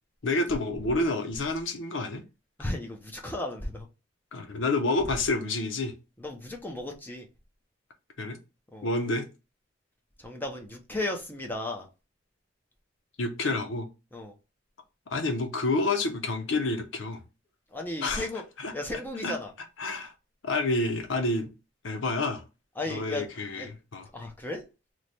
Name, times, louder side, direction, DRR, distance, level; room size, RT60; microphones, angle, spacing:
voice 1, 0.2-2.2 4.3-5.9 8.2-8.4 8.8-9.3 13.2-13.9 15.1-17.2 18.0-18.3 18.6-18.7 19.2-19.3 19.8-20.1 20.4-21.5 21.8-22.4 22.9-24.1, left 2 dB, 90° left, 0.7 m, -28 dB
voice 2, 2.6-3.9 6.2-7.3 8.7-8.9 10.2-11.9 14.1-14.3 17.7-18.4 18.7-19.5 22.8-23.2 23.5-23.7 24.1-24.6, left 2 dB, 10° left, 0.6 m, -34 dB
3.1 x 2.1 x 4.0 m
head